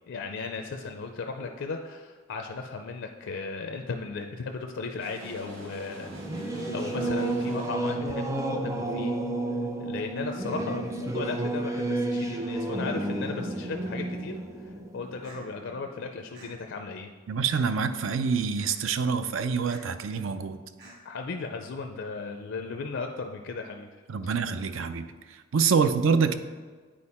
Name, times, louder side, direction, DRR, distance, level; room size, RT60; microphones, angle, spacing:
voice 1, 0.1-6.1 6.7-9.2 9.8-17.1 21.0-24.0, left 4 dB, 65° left, 4 dB, 0.4 m, -36 dB
sound 1, 5.0-8.1, right 1 dB, 90° right, 1.7 m, -44 dB
Singing / Musical instrument, 6.0-16.1, right 1 dB, 15° right, 0.5 m, -31 dB
sound 2, 15.2-15.4 16.3-16.5 17.5-17.8 18.6-18.7 19.7-19.8 20.8-20.9, right 2 dB, 45° right, 2.0 m, -49 dB
voice 2, 17.3-20.6 24.1-26.3, right 5 dB, 70° right, 10 dB, 0.5 m, -26 dB
8.7 x 4.5 x 4.2 m, 1.4 s
head